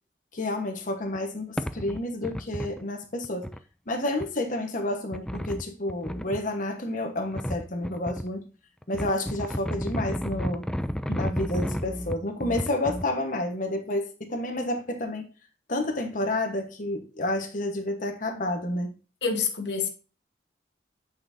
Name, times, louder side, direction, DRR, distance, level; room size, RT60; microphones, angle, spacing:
voice 1, 0.3-3.5 3.9-8.4 8.9-10.7 11.1-15.3 15.7-18.9, left 1 dB, 50° left, 1.1 m, -30 dB
sound 1, 1.1-1.2 1.6-2.8 3.2-3.6 4.2-4.3 5.1-6.4 7.3-8.3 8.8-13.1, equal, 5° left, 0.3 m, -32 dB
voice 2, 19.2-19.9, left 5 dB, 85° left, 1.2 m, -27 dB
8.7 x 5.3 x 2.6 m
head